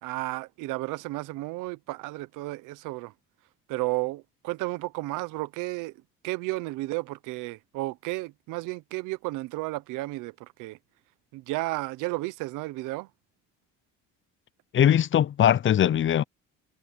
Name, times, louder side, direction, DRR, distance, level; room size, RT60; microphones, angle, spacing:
voice 1, 0.0-3.1 3.7-10.8 11.3-13.1, right 21 dB, 85° right, 1.0 m, -33 dB
voice 2, 14.7-16.2, left 10 dB, 40° left, 0.6 m, -21 dB
cardioid pair, 90°, 31 cm